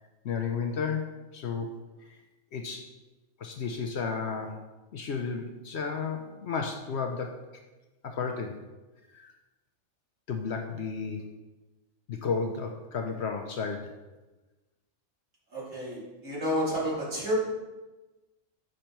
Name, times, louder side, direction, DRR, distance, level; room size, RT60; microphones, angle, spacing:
voice 1, 0.2-1.7 2.5-2.9 3.4-4.6 4.9-7.3 8.0-8.6 9.1-9.3 10.3-11.3 12.1-13.9, left 5 dB, 60° left, 4 dB, 0.8 m, -33 dB
voice 2, 15.5-17.3, equal, 65° right, -7 dB, 3.0 m, -30 dB
6.6 x 5.2 x 4.4 m, 1.1 s
omnidirectional pair, 1.4 m